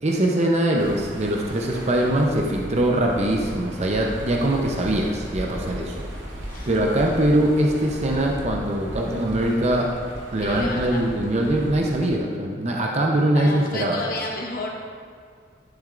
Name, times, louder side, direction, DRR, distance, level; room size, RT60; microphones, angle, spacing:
voice 1, 0.0-6.0 6.7-9.9 10.3-14.0, right 1 dB, 35° right, 0 dB, 0.6 m, -22 dB
sound 1, 0.7-12.1, equal, 80° right, 1.1 m, -36 dB
voice 2, 10.4-11.0 13.3-14.7, left 2 dB, 50° left, -1 dB, 1.1 m, -31 dB
11.5 x 7.0 x 2.5 m, 2.1 s
head